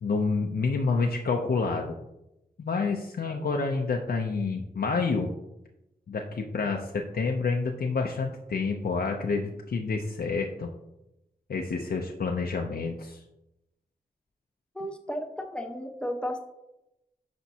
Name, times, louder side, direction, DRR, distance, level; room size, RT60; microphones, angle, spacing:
voice 1, 0.0-1.9 2.6-5.3 6.1-10.7 11.5-13.2, left 4 dB, 70° left, 1 dB, 0.6 m, -28 dB
voice 2, 14.8-16.4, equal, 5° left, 4 dB, 1.0 m, -33 dB
10.5 x 4.4 x 2.8 m, 0.90 s
cardioid pair, 60°, 16 cm